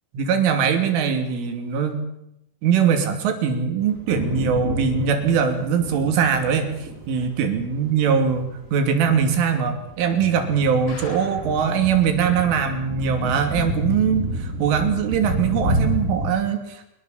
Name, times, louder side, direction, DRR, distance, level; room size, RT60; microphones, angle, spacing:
voice 1, 0.1-2.1 2.6-6.8 7.1-8.5 8.7-16.9, right 7 dB, 70° right, 6 dB, 5.1 m, -21 dB
sound 1, 3.8-16.3, right 1 dB, 15° right, 4.0 m, -30 dB
sound 2, 10.9-11.7 12.1-12.2 12.5-12.6 13.0-13.1, left 4 dB, 90° left, 7.0 m, -41 dB
24.5 x 22.0 x 7.3 m, 0.80 s
omnidirectional pair, 5.9 m